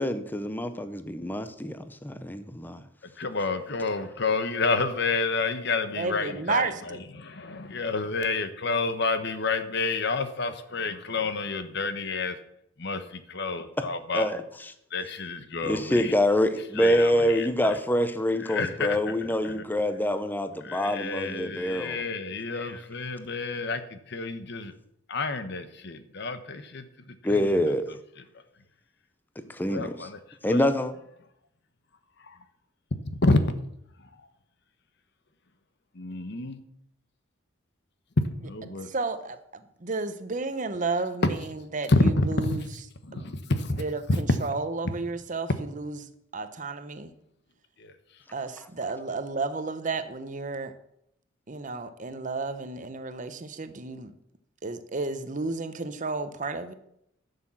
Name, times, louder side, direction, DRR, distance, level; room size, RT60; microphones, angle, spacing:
voice 1, 0.0-2.8 14.1-14.4 15.6-22.0 22.5-22.7 27.2-27.9 29.5-30.1 30.4-30.9, equal, 10° left, 0.7 m, -26 dB
voice 2, 3.2-12.4 12.8-14.3 14.9-16.1 16.8-17.8 18.4-19.2 19.4-19.6 20.6-24.7 25.1-27.6 29.7-30.2 30.5-30.6 32.2-32.4 33.2-33.5 35.9-36.6 38.4-38.9 41.2-41.3 41.9-42.7 43.1-43.8 44.1-44.2 47.8-47.9, left 3 dB, 55° left, 1.0 m, -29 dB
voice 3, 5.9-7.0 38.8-42.6 43.1-43.3 43.8-46.0 46.3-47.1 48.3-50.7 51.5-54.1 54.6-56.7, right 3 dB, 40° right, 0.8 m, -32 dB
11.0 x 6.7 x 7.4 m
head